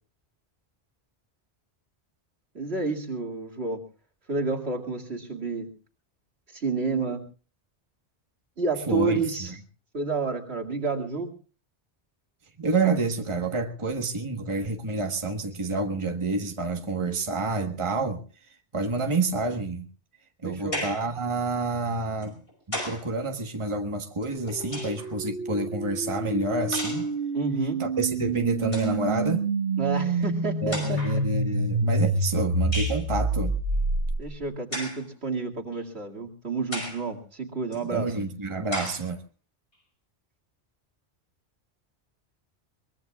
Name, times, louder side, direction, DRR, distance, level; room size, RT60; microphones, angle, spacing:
voice 1, 2.5-3.8 4.3-5.7 6.5-7.2 8.6-9.5 9.9-11.3 20.4-20.8 27.3-27.8 29.8-31.2 34.2-38.1, right 4 dB, 70° right, 1 dB, 2.6 m, -30 dB
voice 2, 8.9-9.2 12.6-19.8 20.4-22.4 22.7-27.1 27.8-29.4 30.6-33.5 37.9-39.2, right 3 dB, 25° right, 4 dB, 1.4 m, -28 dB
sound 1, 20.7-21.1 22.2-23.1 24.2-25.1 26.7-27.1 28.2-28.3 28.6-29.0 30.0-30.1 30.7-31.2 32.7-33.1 34.7-35.1 35.7-35.8 36.7-37.1 37.7-37.8 38.7-39.1, left 1 dB, 60° left, 5.7 m, -34 dB
sound 2, 24.4-34.4, right 2 dB, 85° right, 2.1 m, -28 dB
23.0 x 21.5 x 2.4 m, 0.36 s
omnidirectional pair, 1.1 m